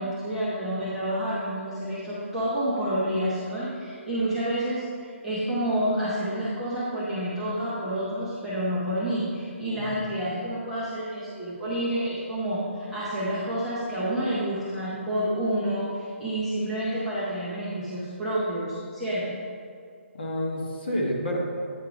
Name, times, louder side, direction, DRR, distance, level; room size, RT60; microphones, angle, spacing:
voice 1, 0.0-19.4, right 1 dB, ahead, -15 dB, 0.7 m, -29 dB
voice 2, 9.7-10.1 20.1-21.7, equal, 50° left, -2 dB, 1.3 m, -29 dB
8.7 x 3.6 x 5.0 m, 2.2 s
hypercardioid pair, 180°, 7 cm